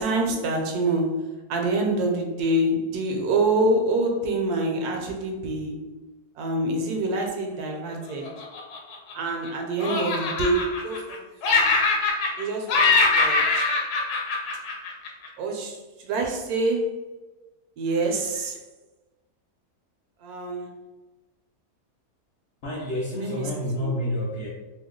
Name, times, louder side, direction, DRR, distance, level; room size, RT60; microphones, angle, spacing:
voice 1, 0.0-5.8 6.4-8.3 9.1-11.2 11.5-11.7 12.4-13.6 15.4-16.9 17.8-18.6 20.2-20.7 23.2-23.4 23.8-23.9, right 2 dB, 80° right, 2 dB, 1.1 m, -26 dB
Laughter, 8.2-9.5 9.8-11.2 11.4-12.4 12.7-15.3, left 3 dB, 85° left, 1.1 m, -23 dB
voice 2, 22.6-24.5, left 1 dB, 65° left, -4 dB, 0.7 m, -29 dB
2.8 x 2.1 x 3.6 m, 1.2 s
omnidirectional pair, 1.7 m